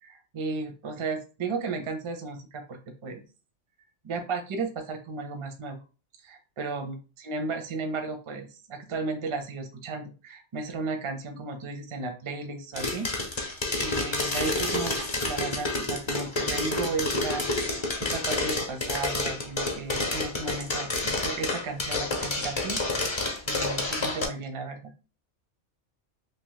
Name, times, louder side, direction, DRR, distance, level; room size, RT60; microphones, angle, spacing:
voice 1, 0.0-3.2 4.0-5.8 6.2-7.0 7.2-13.1 13.4-24.9, right 4 dB, 40° right, 5 dB, 0.5 m, -34 dB
sound 1, 12.8-24.3, left 2 dB, 30° left, 0.6 m, -29 dB
2.9 x 2.7 x 3.8 m, 0.34 s
omnidirectional pair, 1.3 m